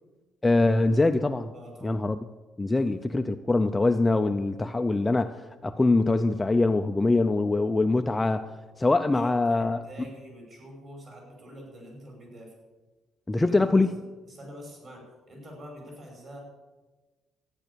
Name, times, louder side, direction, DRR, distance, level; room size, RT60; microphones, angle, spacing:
voice 1, 0.4-1.5 1.8-2.2 2.6-8.5 8.8-9.8 13.3-13.9, left 2 dB, 10° left, 7 dB, 0.4 m, -23 dB
voice 2, 1.5-2.0 2.8-2.9 9.0-12.5 13.4-16.4, equal, 40° right, 0 dB, 5.5 m, -46 dB
13.5 x 9.8 x 6.9 m, 1.2 s
cardioid pair, 170°, 0 cm